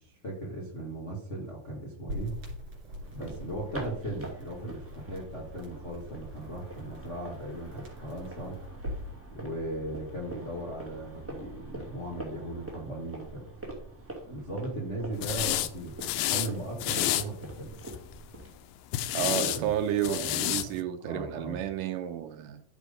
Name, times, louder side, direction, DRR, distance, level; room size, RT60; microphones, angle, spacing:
voice 1, 0.0-2.4 3.1-8.6 9.3-13.4 14.3-17.8 19.1-19.7 19.9-21.6, right 1 dB, 35° left, -3 dB, 1.1 m, -38 dB
sound 1, 2.1-9.1, left 1 dB, 45° right, 3.8 m, -43 dB
sound 2, 3.0-18.6, right 2 dB, 5° right, 1.4 m, -45 dB
sound 3, 15.2-15.7 16.0-16.5 16.8-17.2 17.8-18.2 18.9-19.6 20.0-20.7, left 14 dB, 85° left, 2.4 m, -29 dB
voice 2, 19.1-22.6, right 11 dB, 75° right, 8 dB, 2.1 m, -31 dB
11.0 x 5.1 x 5.1 m, 0.65 s
omnidirectional pair, 4.1 m